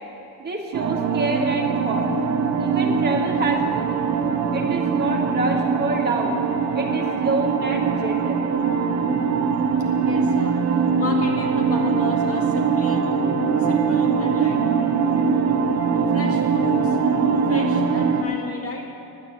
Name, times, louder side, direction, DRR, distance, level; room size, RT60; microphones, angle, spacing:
voice 1, 0.4-2.1 2.6-4.0 4.5-6.4 6.7-8.4, right 2 dB, 25° right, -1 dB, 1.9 m, -27 dB
sound 1, 0.7-18.2, right 5 dB, 45° right, 0.9 m, -22 dB
voice 2, 10.0-10.6 11.0-13.0 13.6-14.9 16.1-17.0 17.5-18.9, left 2 dB, 35° left, 0 dB, 2.1 m, -33 dB
10.5 x 8.9 x 9.5 m, 2.8 s
cardioid pair, 135°, 39 cm